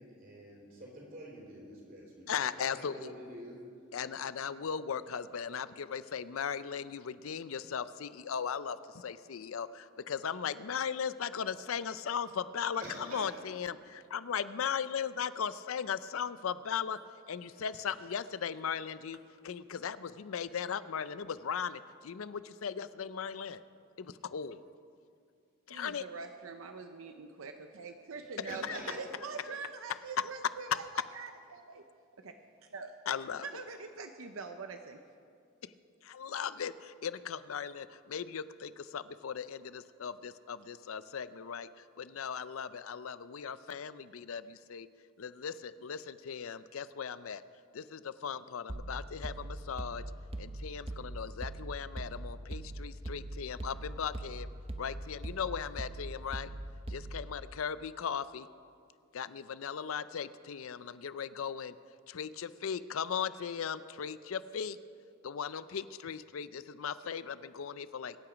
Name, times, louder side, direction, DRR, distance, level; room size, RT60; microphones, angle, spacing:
voice 1, 0.0-3.6 12.8-13.3 28.5-29.0, right 1 dB, 45° right, -2 dB, 3.7 m, -47 dB
voice 2, 2.3-3.1 3.9-17.0 17.3-19.2 19.4-23.6 24.0-24.6 25.7-26.1 28.7-28.8 33.1-33.6 36.0-41.7 42.0-44.9 45.2-47.4 47.7-50.0 50.4-54.5 54.8-56.5 56.9-58.5 59.1-61.7 62.1-64.8 65.2-68.2, left 7 dB, 80° left, 15 dB, 0.5 m, -38 dB
voice 3, 25.7-30.9 31.1-31.8 32.2-32.3 32.7-32.9 33.4-35.0, right 4 dB, 80° right, 6 dB, 0.7 m, -44 dB
sound 1, 48.7-57.4, right 1 dB, 30° right, 0.8 m, -41 dB
22.5 x 8.8 x 5.1 m, 2.3 s
head